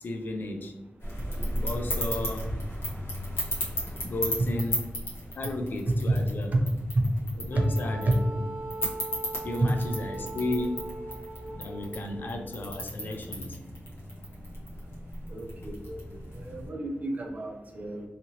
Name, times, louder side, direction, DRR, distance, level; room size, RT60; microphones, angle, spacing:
voice 1, 0.0-0.7 1.6-2.5 4.0-4.9 5.3-6.5 7.5-8.2 9.4-10.9 11.6-13.6, left 2 dB, 50° left, 4 dB, 0.3 m, -34 dB
sound 1, 1.0-16.7, equal, 70° left, 0.9 m, -36 dB
Wind instrument woodwind instrument, 7.5-12.6, right 2 dB, 20° left, 1.0 m, -40 dB
voice 2, 15.3-16.0 16.3-18.0, right 2 dB, 40° right, 1 dB, 0.5 m, -29 dB
2.7 x 2.6 x 2.8 m, 1.1 s
wide cardioid pair, 175°, 4 cm